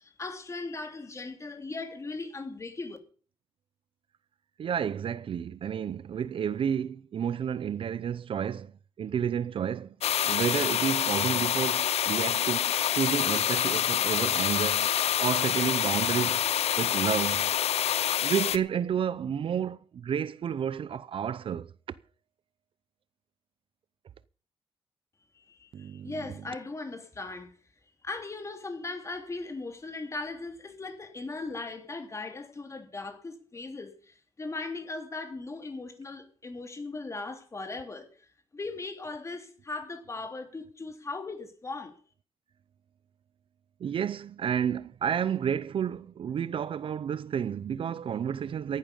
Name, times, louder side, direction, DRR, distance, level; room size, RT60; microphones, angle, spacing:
voice 1, 0.0-3.0 25.3-27.5 28.0-38.3 38.5-42.0, left 3 dB, 30° left, 3.3 m, -38 dB
voice 2, 4.6-8.7 9.0-10.0 10.3-14.9 15.2-16.4 16.8-17.6 18.2-21.7 25.7-26.1 43.8-48.8, right 8 dB, 55° right, 0.6 m, -31 dB
sound 1, 10.0-18.6, left 10 dB, 75° left, 0.8 m, -27 dB
16.0 x 11.5 x 5.3 m
cardioid pair, 110°, 10 cm